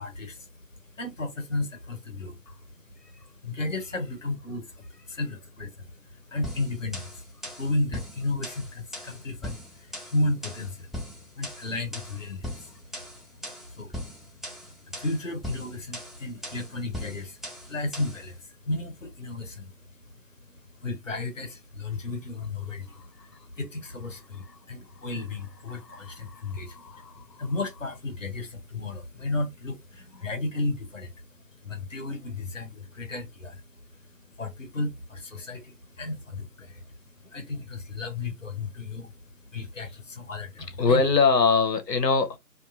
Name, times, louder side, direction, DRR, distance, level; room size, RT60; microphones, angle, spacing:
voice 1, 0.0-41.0, left 2 dB, 50° left, 0.8 m, -34 dB
sound 1, 6.4-18.3, equal, ahead, 0.5 m, -40 dB
voice 2, 25.7-27.4 30.2-30.3 40.8-42.4, left 4 dB, 75° left, 0.9 m, -24 dB
2.5 x 2.4 x 2.4 m
figure-of-eight pair, 170°, 49 cm